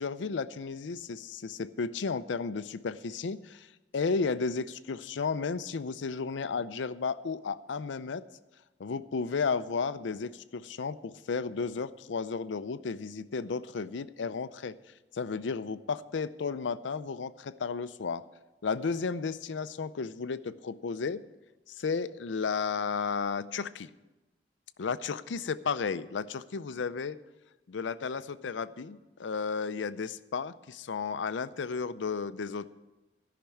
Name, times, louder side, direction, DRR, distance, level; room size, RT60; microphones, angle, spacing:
voice 1, 0.0-3.7 3.9-8.2 8.8-14.8 15.1-18.2 18.6-21.2 21.7-23.9 24.8-27.2 27.7-32.7, left 5 dB, 85° left, 14 dB, 0.5 m, -33 dB
13.5 x 5.9 x 8.5 m, 1.1 s
head